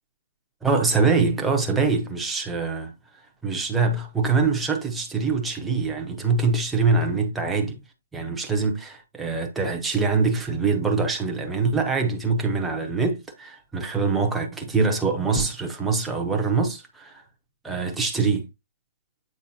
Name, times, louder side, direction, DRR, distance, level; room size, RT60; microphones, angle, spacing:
voice 1, 0.6-2.9 3.4-7.8 8.1-17.2 17.6-18.5, right 4 dB, 5° right, 0.7 m, -24 dB
8.5 x 4.8 x 2.7 m
hypercardioid pair, 180°, 0 cm